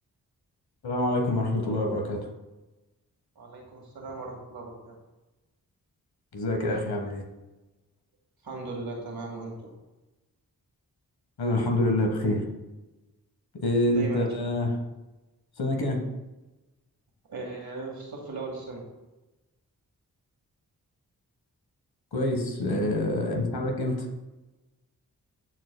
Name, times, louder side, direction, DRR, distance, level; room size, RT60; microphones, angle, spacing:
voice 1, 0.8-2.3 6.3-7.2 11.4-12.4 13.5-14.8 15.6-16.0 22.1-24.1, left 1 dB, 80° left, 2 dB, 1.4 m, -26 dB
voice 2, 3.4-5.0 8.4-9.7 13.9-14.3 17.3-18.8 22.7-22.8, right 3 dB, 75° right, -1 dB, 1.9 m, -38 dB
13.0 x 4.7 x 2.2 m, 1.1 s
cardioid pair, 45°, 37 cm